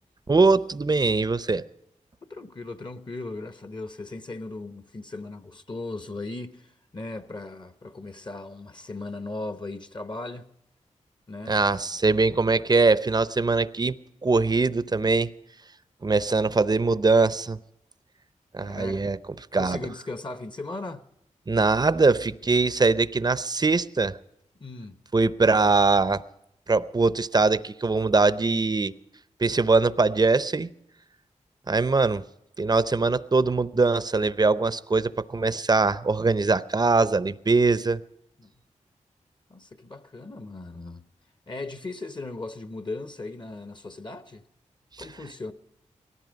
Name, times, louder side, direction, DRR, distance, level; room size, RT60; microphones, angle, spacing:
voice 1, 0.3-1.6 11.5-14.0 14.2-15.3 16.0-17.6 18.5-19.2 19.5-19.8 21.5-24.2 25.1-26.2 26.7-28.9 29.4-30.7 31.7-32.2 32.6-38.0, right 3 dB, 30° right, 0.7 m, -22 dB
voice 2, 2.2-10.5 11.3-11.6 18.6-19.0 19.6-21.0 24.6-25.0 38.4-38.5 39.5-41.0 41.5-44.4 45.0-45.5, left 2 dB, 35° left, 1.0 m, -37 dB
18.0 x 14.0 x 5.2 m
cardioid pair, 50°, 13 cm